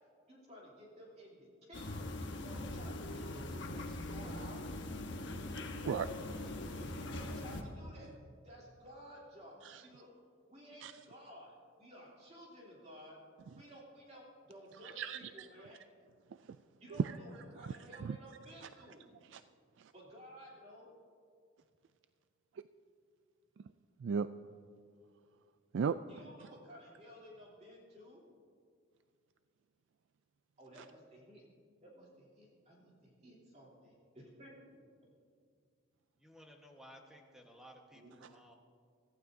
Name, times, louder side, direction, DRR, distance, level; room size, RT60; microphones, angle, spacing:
voice 1, 0.3-2.1 2.4-4.8 7.0-8.1 8.4-10.1 10.5-13.2 13.5-15.8 16.8-19.1 19.9-20.9 26.1-28.2 30.6-31.4 31.8-34.5 37.9-38.2, equal, 35° right, -4 dB, 3.1 m, -54 dB
sound 1, 1.7-7.6, left 2 dB, 60° left, 1.2 m, -42 dB
voice 2, 5.2-7.0 9.6-9.8 10.8-10.9 15.0-15.5 17.0-17.1 18.0-18.2 19.3-19.4 19.8-19.9 24.0-24.3 25.7-26.0, right 6 dB, 60° right, 11 dB, 0.3 m, -37 dB
voice 3, 36.2-38.6, equal, 5° right, 1 dB, 1.3 m, -57 dB
24.0 x 14.5 x 2.7 m, 2.2 s
head